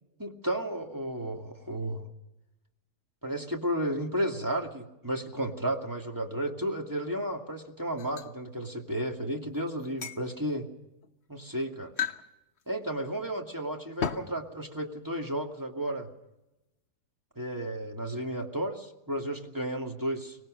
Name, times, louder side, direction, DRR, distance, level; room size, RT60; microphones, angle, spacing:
voice 1, 0.2-2.1 3.2-10.7 11.3-11.9 12.7-16.1 17.4-20.4, right 1 dB, 10° right, 1 dB, 2.2 m, -33 dB
sound 1, 8.0-8.3 9.8-10.2 11.0-11.1 11.9-12.3 12.6-12.7 14.0-14.4, left 7 dB, 45° left, 1.2 m, -33 dB
24.5 x 19.0 x 6.6 m, 0.93 s
omnidirectional pair, 1.8 m